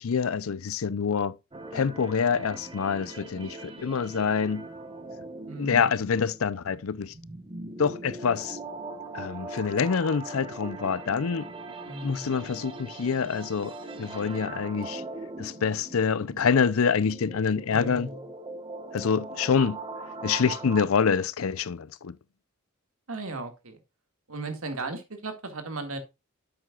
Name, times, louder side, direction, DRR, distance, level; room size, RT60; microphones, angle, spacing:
voice 1, 0.0-1.4 1.7-4.7 5.6-7.1 7.8-8.6 9.1-11.5 12.0-15.0 15.4-18.1 18.9-19.8 20.2-22.1, left 6 dB, 70° left, 0.5 m, -26 dB
sound 1, 1.5-20.8, right 2 dB, 25° right, 1.2 m, -41 dB
voice 2, 5.5-5.9 11.9-12.3 17.7-18.2 23.1-23.8 24.3-26.0, right 3 dB, 75° right, 2.0 m, -36 dB
9.9 x 7.8 x 2.4 m
head